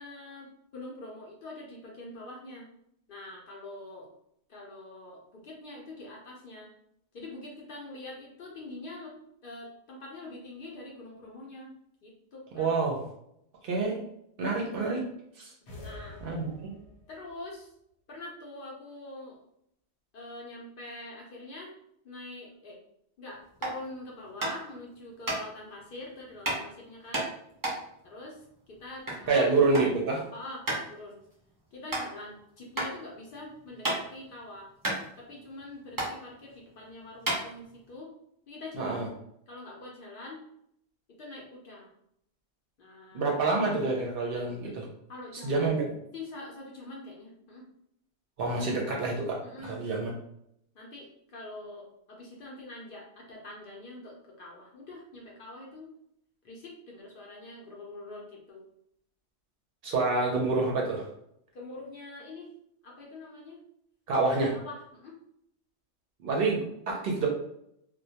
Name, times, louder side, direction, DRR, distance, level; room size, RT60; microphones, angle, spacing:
voice 1, 0.0-2.7 3.1-4.1 4.5-6.7 7.1-9.1 9.4-11.7 12.0-12.8 15.8-16.2 17.1-17.7 18.1-19.4 20.1-21.7 22.0-22.8 23.2-27.3 28.0-29.5 30.3-31.2 31.7-34.7 35.2-38.1 38.5-39.0 39.5-40.4 41.1-41.9 42.8-43.4 45.1-45.8 46.1-47.7 49.4-49.8 50.7-55.9 56.4-58.7 61.5-62.5 62.8-63.6 64.6-65.2, left 2 dB, 60° left, -2 dB, 0.7 m, -44 dB
voice 2, 12.5-13.0 13.6-14.0 14.4-15.0 15.4-15.5 16.2-16.8 29.3-30.2 38.8-39.1 43.1-44.9 45.4-45.9 48.4-50.1 59.8-61.1 64.1-64.5 66.2-67.3, right 3 dB, 65° right, 0 dB, 0.7 m, -27 dB
sound 1, 15.7-17.2, left 2 dB, 80° left, 1.0 m, -46 dB
sound 2, 23.5-23.8 24.4-24.7 25.2-25.4 26.4-26.6 27.1-29.2 29.5-29.9 30.2-30.3 30.7-30.9 31.3-31.4 31.9-32.0 32.7-32.9 33.3-34.3 34.5-34.6 34.8-35.6 35.9-36.1 36.7-36.8 37.2-37.9, right 1 dB, 30° right, 0.4 m, -31 dB
2.1 x 2.1 x 2.7 m, 0.73 s
omnidirectional pair, 1.1 m